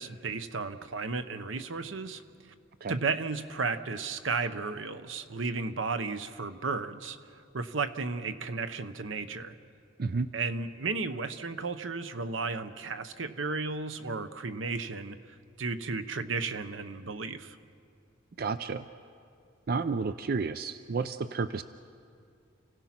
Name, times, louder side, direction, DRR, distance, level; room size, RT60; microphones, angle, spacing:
voice 1, 0.0-2.5 2.9-9.5 10.3-15.2 15.6-17.6, right 4 dB, 85° right, 10 dB, 0.9 m, -34 dB
voice 2, 10.0-10.3 18.4-18.9 19.7-21.6, right 4 dB, 50° right, 11 dB, 0.4 m, -31 dB
29.5 x 16.5 x 5.9 m, 2.3 s
head